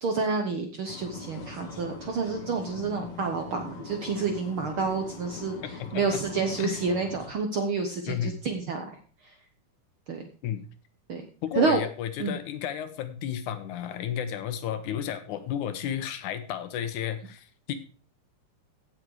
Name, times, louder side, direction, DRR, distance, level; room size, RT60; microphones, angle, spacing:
voice 1, 0.0-5.6 5.9-8.8 10.1-10.2 11.1-11.2 11.6-11.8 12.2-12.4, right 4 dB, 60° right, 4 dB, 1.4 m, -29 dB
sound 1, 0.9-7.3, left 3 dB, 40° left, 1.9 m, -42 dB
voice 2, 5.5-6.0 6.6-6.8 8.1-8.4 10.4-10.6 11.4-17.7, left 9 dB, 75° left, 10 dB, 2.3 m, -33 dB
16.0 x 6.3 x 4.8 m, 0.39 s
omnidirectional pair, 3.7 m